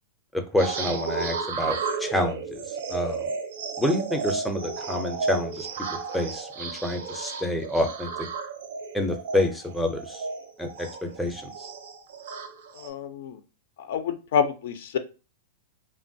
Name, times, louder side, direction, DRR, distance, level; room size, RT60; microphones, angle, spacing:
voice 1, 0.3-3.3 3.8-5.7 6.1-8.3 8.9-10.2 10.6-11.5, left 1 dB, ahead, 4 dB, 0.4 m, -28 dB
sound 1, 0.6-12.9, right 5 dB, 75° right, 0.5 m, -33 dB
voice 2, 12.8-13.4 13.9-15.0, left 7 dB, 70° left, 10 dB, 0.4 m, -27 dB
3.0 x 2.2 x 2.6 m, 0.33 s
hypercardioid pair, 140°, 0 cm